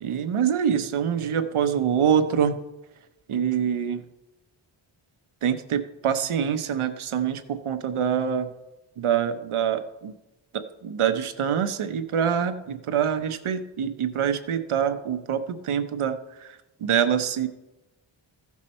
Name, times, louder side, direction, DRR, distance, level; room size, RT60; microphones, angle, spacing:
voice 1, 0.0-2.6 3.3-4.0 5.4-8.5 9.0-10.1 10.5-17.5, right 8 dB, 80° right, 9 dB, 1.0 m, -25 dB
15.0 x 6.0 x 4.3 m, 0.99 s
wide cardioid pair, 80°, 49 cm